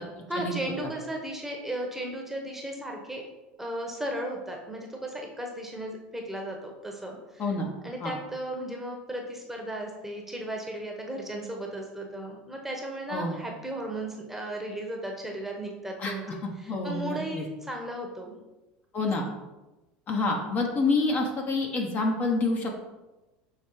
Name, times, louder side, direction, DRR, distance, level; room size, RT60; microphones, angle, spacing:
voice 1, 0.3-3.2 3.6-7.6 7.8-18.4, right 1 dB, 5° right, 0 dB, 1.1 m, -35 dB
voice 2, 16.4-17.4 18.9-19.2 20.1-22.8, left 3 dB, 35° left, 2 dB, 1.1 m, -27 dB
6.3 x 3.2 x 4.7 m, 1.1 s
supercardioid pair, 110°, 5 cm